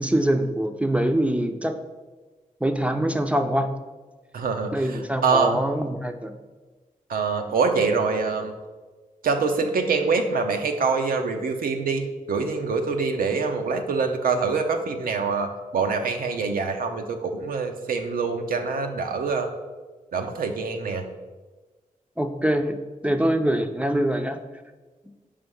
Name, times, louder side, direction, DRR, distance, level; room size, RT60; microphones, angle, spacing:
voice 1, 0.0-1.8 2.6-3.7 4.7-6.3 22.2-22.8 23.0-24.4, right 1 dB, 10° right, 6 dB, 0.5 m, -24 dB
voice 2, 4.3-5.6 7.1-8.5 9.2-19.5 20.1-21.0, right 4 dB, 85° right, 5 dB, 0.6 m, -25 dB
5.2 x 3.4 x 5.3 m, 1.3 s
cardioid pair, 45°, 15 cm